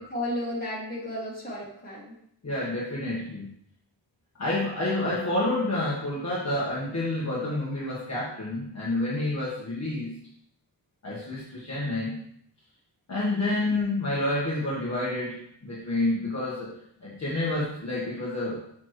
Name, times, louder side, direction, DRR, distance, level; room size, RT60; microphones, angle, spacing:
voice 1, 0.0-2.1, left 1 dB, 20° left, -6 dB, 2.3 m, -33 dB
voice 2, 2.4-3.5 4.4-10.2 11.0-12.2 13.1-16.8 17.0-18.6, left 2 dB, 35° left, -7 dB, 1.4 m, -29 dB
7.1 x 6.0 x 3.1 m, 0.71 s
wide cardioid pair, 180°, 45 cm